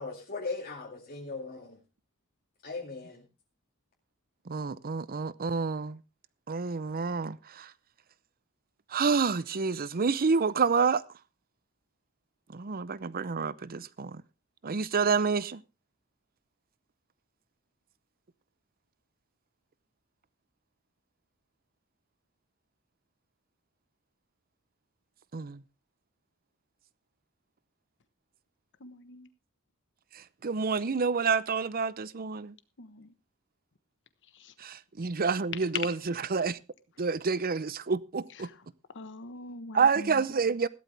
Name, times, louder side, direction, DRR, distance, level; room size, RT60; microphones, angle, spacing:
voice 1, 0.0-1.8 2.6-3.2, left 3 dB, 40° left, 2.4 m, -38 dB
voice 2, 4.5-6.0 6.5-7.7 8.9-11.0 12.5-14.2 14.6-15.6 25.3-25.6 30.1-32.5 34.6-35.9 36.3-36.6 37.0-38.5 39.7-40.7, right 5 dB, 45° right, 0.6 m, -28 dB
voice 3, 28.8-29.3 32.8-33.1 34.3-34.5 38.3-38.6 38.9-40.2, left 1 dB, 55° left, 1.2 m, -45 dB
15.5 x 12.5 x 3.4 m
head